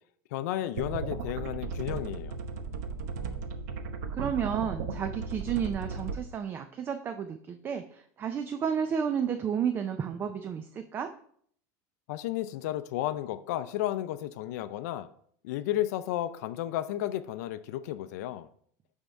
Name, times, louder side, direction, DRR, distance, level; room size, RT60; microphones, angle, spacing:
voice 1, 0.3-2.4 12.1-15.1 15.4-18.5, left 13 dB, 75° left, 12 dB, 0.4 m, -33 dB
sound 1, 0.8-6.2, right 5 dB, 85° right, 0.8 m, -36 dB
voice 2, 4.1-11.1, right 7 dB, 25° right, 8 dB, 0.4 m, -32 dB
9.1 x 3.6 x 4.4 m, 0.62 s
supercardioid pair, 150°, 9 cm